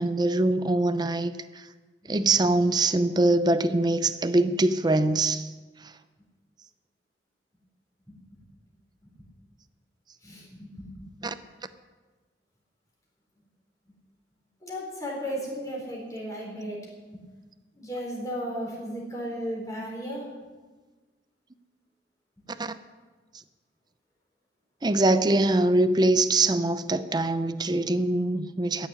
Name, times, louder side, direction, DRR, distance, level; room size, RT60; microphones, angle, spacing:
voice 1, 0.0-1.3 2.1-5.5 11.2-11.3 22.6-22.8 24.8-28.9, right 2 dB, 25° right, 0.6 m, -23 dB
voice 2, 10.2-11.0 14.6-17.2 17.7-20.3, equal, 20° left, 4.4 m, -35 dB
14.0 x 7.2 x 9.9 m
head